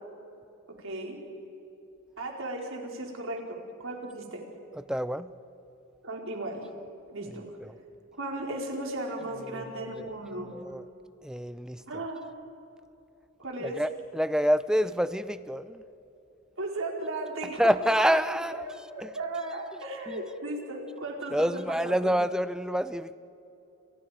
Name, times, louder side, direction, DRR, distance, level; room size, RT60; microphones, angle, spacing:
voice 1, 0.8-1.2 2.2-4.4 6.0-6.6 7.1-7.5 8.2-10.6 11.9-12.2 13.4-13.8 16.6-18.1 18.5-22.1, right 2 dB, 75° right, 0 dB, 4.6 m, -36 dB
voice 2, 4.9-5.3 7.6-7.8 9.4-10.1 10.5-10.8 11.2-12.0 13.6-15.8 17.6-18.6 19.0-19.1 20.1-20.2 21.3-23.2, equal, 5° right, 13 dB, 0.6 m, -27 dB
29.0 x 28.0 x 5.1 m, 2.9 s
head